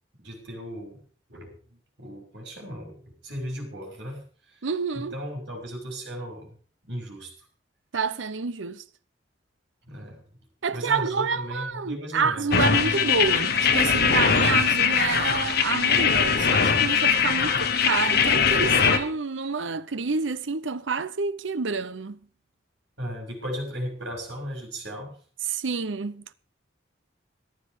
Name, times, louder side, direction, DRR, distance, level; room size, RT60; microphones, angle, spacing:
voice 1, 0.2-1.0 1.3-4.7 4.9-6.6 6.9-7.5 9.9-10.2 10.7-12.5 23.0-25.2, equal, 65° right, 6.0 m, -36 dB
voice 2, 4.6-5.1 7.9-8.8 10.6-22.2 25.5-26.3, right 5 dB, 85° right, 0.8 m, -28 dB
sound 1, 12.5-19.0, left 6 dB, 55° left, 1.6 m, -21 dB
14.0 x 12.0 x 5.1 m
head